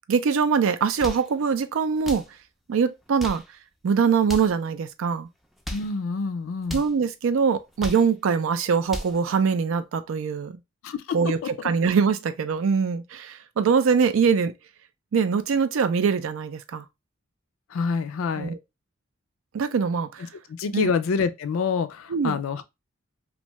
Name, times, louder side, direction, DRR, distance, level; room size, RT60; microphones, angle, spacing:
voice 1, 0.1-2.2 2.7-3.4 3.8-5.3 6.7-10.6 11.1-11.4 11.6-14.5 15.1-16.9 18.4-18.6 19.5-20.3 20.7-20.9 22.1-22.4, right 6 dB, 75° right, 0.4 m, -23 dB
sound 1, 0.8-1.3 2.0-2.3 3.0-3.5 4.2-4.6 5.4-5.9 6.6-6.9 7.6-8.1 8.7-9.2, equal, ahead, 0.4 m, -36 dB
voice 2, 5.7-6.8 10.8-11.5 17.7-18.5 20.5-22.6, left 5 dB, 80° left, 0.4 m, -27 dB
2.6 x 2.2 x 2.9 m
head